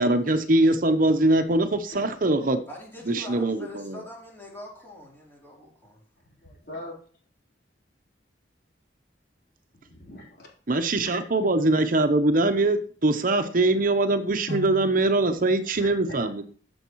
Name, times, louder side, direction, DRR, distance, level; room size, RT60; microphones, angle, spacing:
voice 1, 0.0-2.6 3.1-4.0 10.7-16.4, right 2 dB, 50° right, 8 dB, 0.8 m, -22 dB
voice 2, 2.7-6.0, left 1 dB, 15° left, -4 dB, 3.5 m, -43 dB
voice 3, 6.4-7.0 9.9-10.5 11.0-11.2 14.5-14.9 15.8-16.3, left 1 dB, 60° left, -2 dB, 3.7 m, -38 dB
14.0 x 7.1 x 3.1 m, 0.43 s
head